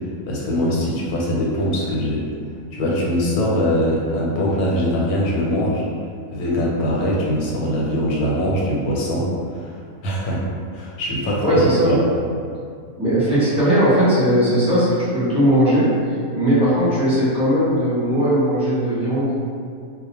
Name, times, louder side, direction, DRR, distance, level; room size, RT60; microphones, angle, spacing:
voice 1, 0.3-2.3 2.7-5.9 6.3-9.8 10.0-12.0, equal, 90° left, -4 dB, 1.1 m, -22 dB
voice 2, 11.4-11.9 13.0-15.9 16.3-19.4, equal, 5° right, -12 dB, 0.4 m, -18 dB
2.4 x 2.1 x 2.8 m, 2.2 s
omnidirectional pair, 1.5 m